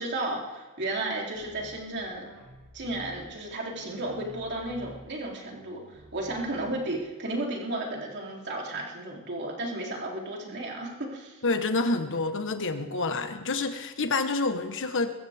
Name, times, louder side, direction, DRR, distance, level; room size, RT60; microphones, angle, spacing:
voice 1, 0.0-2.3 2.7-11.4, right 2 dB, 50° right, -1 dB, 3.3 m, -33 dB
sound 1, 1.3-3.3 3.7-5.1 5.5-7.1, equal, 85° right, 6.8 m, -50 dB
voice 2, 11.4-15.1, left 3 dB, 60° left, 8 dB, 1.3 m, -28 dB
21.5 x 15.0 x 3.6 m, 1.2 s
head